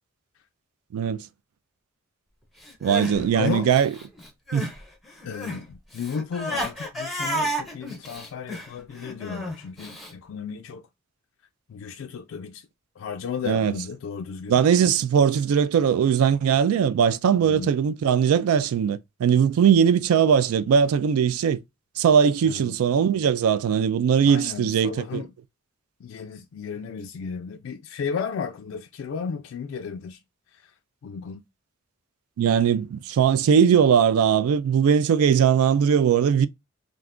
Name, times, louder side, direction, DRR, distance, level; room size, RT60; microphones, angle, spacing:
voice 1, 0.9-1.2 2.8-3.9 4.5-4.7 13.5-13.7 14.5-21.6 22.0-25.2 32.4-36.5, right 7 dB, 90° right, 0.3 m, -20 dB
Crying sobbing, 2.6-4.8 5.1-10.1, equal, ahead, 0.5 m, -32 dB
voice 2, 3.1-3.7 5.2-10.8 11.7-12.7 13.0-14.6 17.4-17.7 22.4-22.8 24.2-25.3 26.0-30.2 30.5-30.7 31.0-31.4, left 6 dB, 65° left, 0.3 m, -34 dB
2.4 x 2.3 x 3.6 m
head